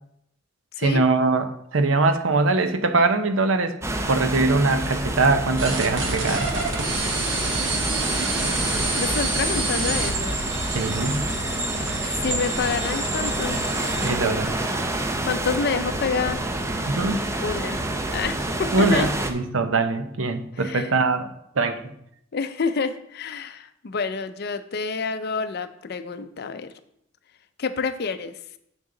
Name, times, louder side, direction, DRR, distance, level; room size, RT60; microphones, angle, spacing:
voice 1, 0.8-3.8 4.1-6.5 10.7-11.3 14.0-14.5 16.9-17.2 18.7-21.9, right 3 dB, 90° right, 8 dB, 0.7 m, -22 dB
sound 1, 3.8-19.3, right 1 dB, 15° right, 0.5 m, -28 dB
sound 2, 5.6-14.1, right 2 dB, 70° right, 1.4 m, -27 dB
voice 2, 9.0-10.4 12.1-13.6 15.2-16.4 17.4-17.8 18.1-19.1 20.5-20.9 22.3-26.7 27.6-28.4, left 5 dB, 55° left, 11 dB, 0.5 m, -28 dB
7.3 x 6.7 x 3.8 m, 0.74 s
head